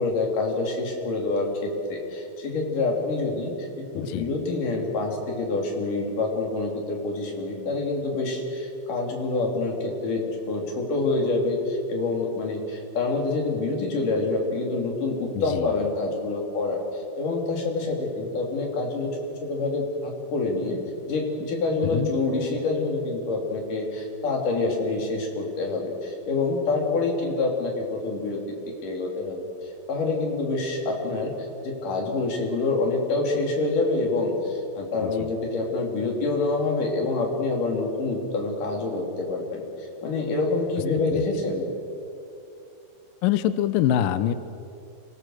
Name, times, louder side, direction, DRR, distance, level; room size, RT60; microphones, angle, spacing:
voice 1, 0.0-20.8 21.1-28.6 28.8-31.3 31.6-41.7, left 3 dB, 50° left, 0 dB, 4.3 m, -27 dB
voice 2, 3.9-4.3 15.3-15.8 21.8-22.1 35.0-35.3 41.1-41.2 43.2-44.3, left 11 dB, 90° left, 13 dB, 1.9 m, -25 dB
26.0 x 19.5 x 6.4 m, 2.6 s
omnidirectional pair, 4.9 m